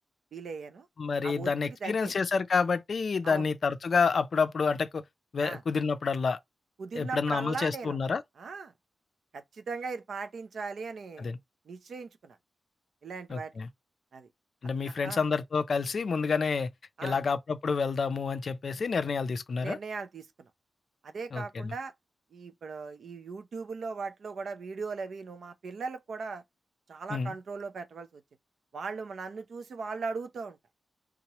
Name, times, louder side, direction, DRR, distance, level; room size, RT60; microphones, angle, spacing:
voice 1, 0.3-0.9 1.2-2.1 3.2-3.5 5.4-5.6 6.8-8.0 8.4-8.7 9.3-11.3 11.7-12.4 13.0-13.5 14.1-14.3 14.8-15.2 17.0-17.2 19.6-20.5 21.0-21.9 22.3-26.4 26.9-28.2 28.7-30.6, right 4 dB, 65° right, 0.5 m, -38 dB
voice 2, 1.0-5.0 5.3-6.4 6.9-8.2 11.2-11.4 13.3-13.7 14.6-16.7 17.0-19.8 21.3-21.7 27.1-27.3, left 5 dB, 50° left, 0.4 m, -29 dB
3.6 x 3.1 x 2.9 m
wide cardioid pair, 165°, 0 cm